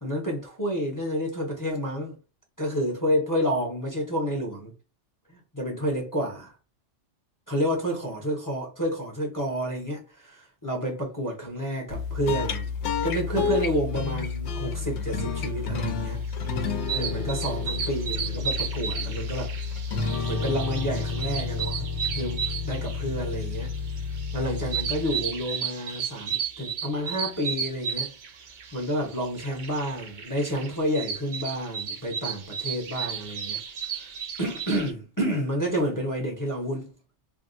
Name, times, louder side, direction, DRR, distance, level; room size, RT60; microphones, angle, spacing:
voice 1, 0.0-2.2 2.6-4.7 5.3-6.5 7.5-12.7 13.0-16.2 16.5-19.5 20.3-23.7 24.3-28.1 28.7-33.6 33.9-36.9, equal, 20° left, 0.7 m, -30 dB
sound 1, 11.9-25.5, left 5 dB, 70° left, 0.8 m, -30 dB
sound 2, 16.2-34.9, right 7 dB, 60° right, 0.5 m, -34 dB
3.4 x 2.3 x 2.5 m
omnidirectional pair, 1.2 m